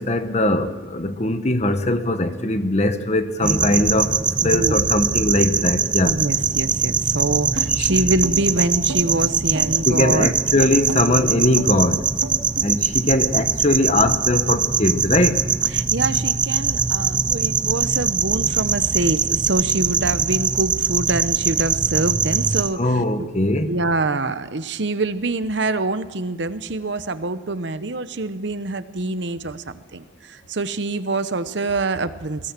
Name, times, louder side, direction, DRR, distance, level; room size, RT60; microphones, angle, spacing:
voice 1, 0.0-4.1 4.4-6.2 9.9-12.1 12.6-15.4 22.8-23.7, left 1 dB, 35° left, 9 dB, 1.1 m, -20 dB
sound 1, 3.4-22.7, right 6 dB, 25° right, 0.5 m, -22 dB
voice 2, 4.4-4.9 6.0-10.3 15.7-23.3 23.7-32.5, right 2 dB, 60° right, 12 dB, 0.9 m, -25 dB
sound 2, 7.6-12.7, right 1 dB, 85° right, 2.2 m, -32 dB
22.5 x 16.5 x 7.4 m, 1.4 s
head